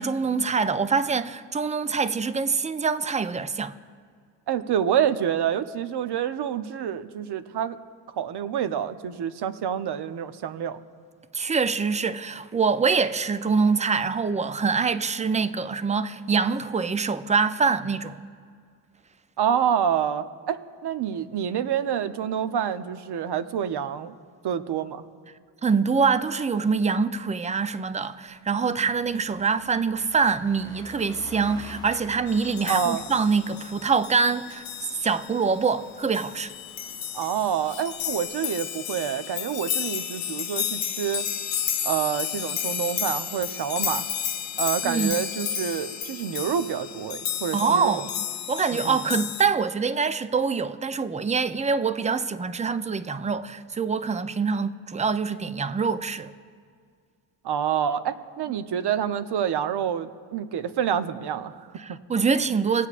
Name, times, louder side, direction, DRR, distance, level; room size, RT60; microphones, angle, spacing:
voice 1, 0.0-3.7 11.3-18.2 25.6-34.6 35.0-36.5 44.8-45.2 47.5-48.1 48.5-56.3 61.8-62.9, right 5 dB, 15° right, 0.4 m, -25 dB
voice 2, 4.5-7.8 8.2-10.8 19.4-24.1 24.4-25.0 32.7-33.1 37.1-41.2 41.8-44.0 44.6-48.1 48.8-49.0 57.4-62.0, right 9 dB, 55° right, 0.7 m, -27 dB
Car passing by, 27.0-27.1 27.4-38.3, left 1 dB, 10° left, 0.9 m, -49 dB
sound 1, 32.3-49.5, left 9 dB, 70° left, 0.7 m, -32 dB
19.5 x 8.2 x 2.5 m
supercardioid pair, 50°, 48 cm